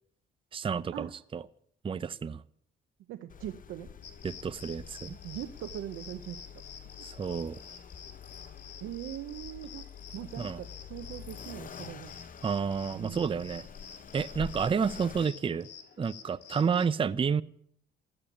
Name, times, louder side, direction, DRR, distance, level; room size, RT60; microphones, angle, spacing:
voice 1, 0.5-1.4 1.8-2.4 4.2-5.2 7.0-7.6 10.4-10.6 12.4-13.6 14.1-15.7 16.0-17.4, right 6 dB, 25° right, 0.5 m, -30 dB
voice 2, 3.1-3.9 5.2-6.4 8.8-9.8 10.1-12.1 12.9-13.5, right 12 dB, 85° right, 0.8 m, -41 dB
Accelerating revving vroom, 3.3-15.3, left 8 dB, 45° left, 0.7 m, -47 dB
sound 1, 4.0-16.9, left 7 dB, 60° left, 3.0 m, -50 dB
13.5 x 8.8 x 9.9 m
cardioid pair, 90°, 20 cm